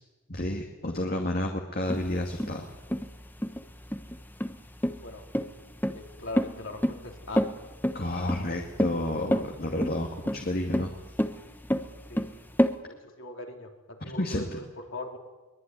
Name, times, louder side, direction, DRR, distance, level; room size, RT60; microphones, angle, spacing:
voice 1, 0.3-2.7 7.9-10.9 14.2-14.6, left 1 dB, 45° left, 2 dB, 2.4 m, -30 dB
sound 1, 1.9-12.7, equal, 10° left, 1.1 m, -29 dB
voice 2, 5.9-7.4 12.1-12.3 12.9-14.6 14.9-15.2, left 2 dB, 60° left, 2 dB, 4.0 m, -40 dB
23.0 x 21.0 x 9.7 m, 1.2 s
head